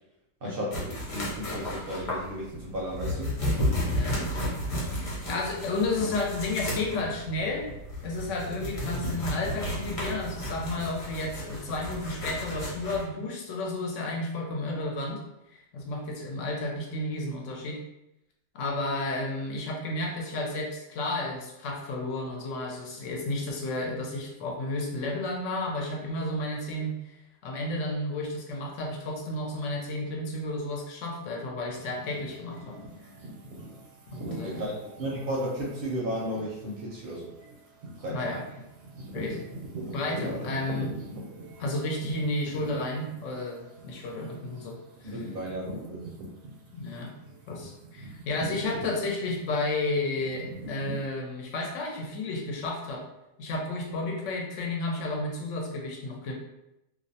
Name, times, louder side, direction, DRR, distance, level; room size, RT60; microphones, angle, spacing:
voice 1, 0.4-3.3 34.4-37.3 38.0-38.2 40.2-40.5 45.0-46.1, equal, 60° right, -4 dB, 0.6 m, -34 dB
sound 1, 0.7-13.0, equal, 45° left, 0.9 m, -33 dB
voice 2, 4.5-7.7 8.0-15.2 15.7-17.8 18.5-27.2 27.4-32.8 34.1-34.7 38.1-38.4 39.1-39.5 39.9-40.9 41.6-45.2 46.7-47.1 47.5-53.1 53.4-56.3, left 2 dB, 75° left, 0 dB, 0.9 m, -32 dB
sound 2, 31.7-46.9 47.2-51.0, right 1 dB, 80° right, 1.0 m, -42 dB
2.4 x 2.0 x 2.7 m, 0.87 s
omnidirectional pair, 1.3 m